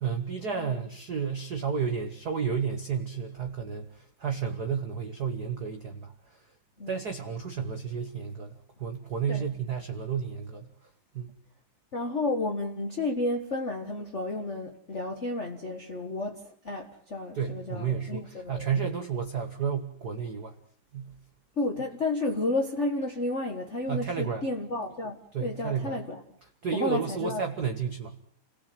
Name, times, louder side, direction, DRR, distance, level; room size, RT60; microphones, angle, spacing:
voice 1, 0.0-6.1 6.9-10.7 11.1-11.3 17.3-20.5 20.9-21.1 23.9-24.4 25.3-26.0 26.6-28.1, right 6 dB, 40° right, 1.6 m, -31 dB
voice 2, 11.9-18.7 21.6-26.2 26.7-27.4, left 2 dB, 35° left, 1.1 m, -32 dB
29.5 x 18.0 x 7.9 m
omnidirectional pair, 3.9 m